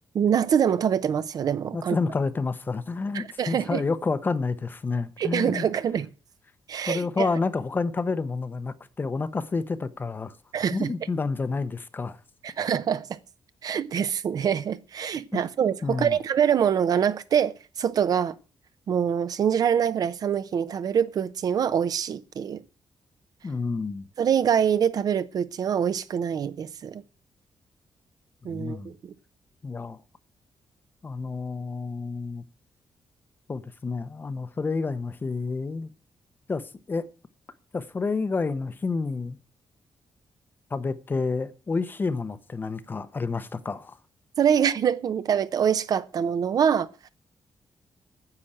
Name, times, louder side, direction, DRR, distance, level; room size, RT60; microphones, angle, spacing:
voice 1, 0.1-2.0 3.1-3.8 5.2-6.1 6.7-7.3 10.5-10.9 12.4-13.1 13.6-18.3 18.9-22.6 24.2-27.0 28.4-29.1 44.4-47.1, right 8 dB, 55° right, 0.7 m, -25 dB
voice 2, 1.7-5.7 6.9-10.3 10.7-12.2 15.3-15.4 15.8-16.2 23.4-24.1 28.5-28.9 29.6-30.0 31.0-32.4 33.5-35.9 36.5-37.1 37.7-39.4 40.7-44.0, left 4 dB, 25° left, 0.7 m, -29 dB
9.8 x 7.8 x 8.7 m
wide cardioid pair, 165°, 8 cm